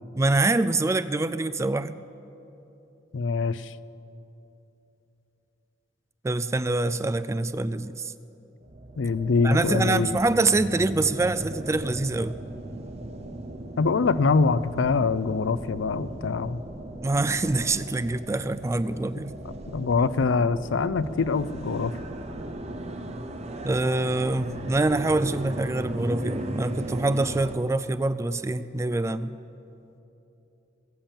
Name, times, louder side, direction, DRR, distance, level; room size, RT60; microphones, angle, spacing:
voice 1, 0.2-2.0 6.2-8.1 9.4-12.4 17.0-19.3 23.6-29.3, right 2 dB, 15° right, 14 dB, 0.3 m, -25 dB
voice 2, 3.1-3.7 9.0-10.2 13.8-16.6 19.7-22.0, left 4 dB, 80° left, 16 dB, 0.5 m, -24 dB
sound 1, 8.6-27.6, right 1 dB, 35° right, 0.9 m, -37 dB
21.5 x 7.3 x 7.2 m, 2.9 s
head